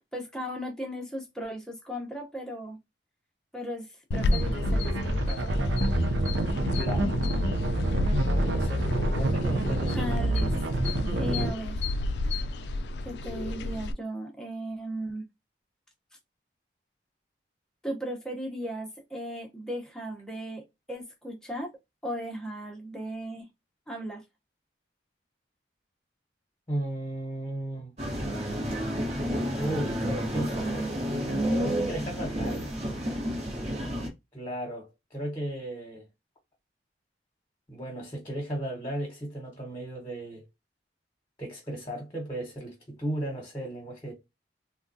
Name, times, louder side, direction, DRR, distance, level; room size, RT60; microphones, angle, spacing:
voice 1, 0.0-2.8 3.5-5.5 9.9-10.6 11.1-11.9 13.0-15.2 17.8-21.7 22.0-23.5 23.9-24.2 32.0-32.1, equal, 5° left, 0.7 m, -37 dB
sound 1, 4.1-13.9, left 2 dB, 70° left, 0.3 m, -32 dB
sound 2, 4.1-11.5, right 1 dB, 90° right, 0.6 m, -27 dB
voice 2, 6.7-7.1 8.4-10.1 26.7-27.9 29.6-30.7 31.6-32.6 34.3-36.1 37.7-40.4 41.4-44.1, right 1 dB, 20° left, 1.1 m, -35 dB
sound 3, 28.0-34.1, equal, 35° right, 0.9 m, -30 dB
3.6 x 2.2 x 2.6 m
head